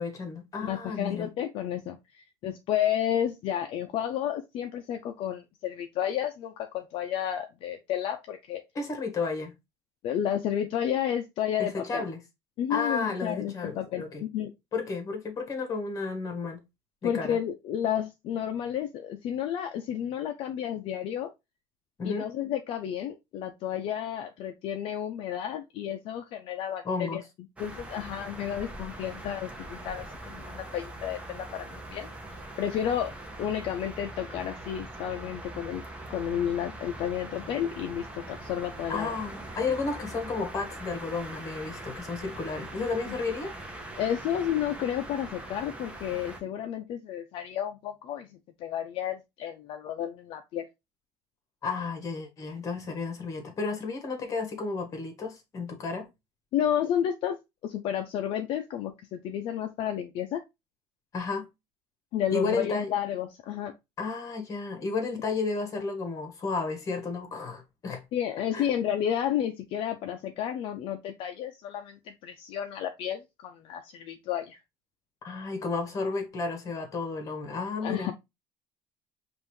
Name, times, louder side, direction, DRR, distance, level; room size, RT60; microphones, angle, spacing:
voice 1, 0.0-1.3 8.7-9.5 11.6-12.2 12.7-14.2 14.7-16.6 17.0-17.4 22.0-22.3 26.8-27.2 38.9-43.5 51.6-56.1 61.1-61.5 62.3-62.9 64.0-68.0 68.5-68.7 75.2-78.1, left 4 dB, 30° left, 1.3 m, -32 dB
voice 2, 0.6-8.6 10.0-12.0 12.6-14.0 14.3-14.5 17.0-21.3 22.0-27.2 27.6-32.1 32.6-35.8 36.1-39.1 44.0-50.7 56.5-57.4 57.6-60.4 62.1-63.7 68.1-74.6 77.8-78.1, left 10 dB, 55° left, 0.5 m, -31 dB
sound 1, 27.6-46.4, right 1 dB, 10° right, 0.9 m, -42 dB
5.4 x 2.6 x 3.1 m
cardioid pair, 145°, 11 cm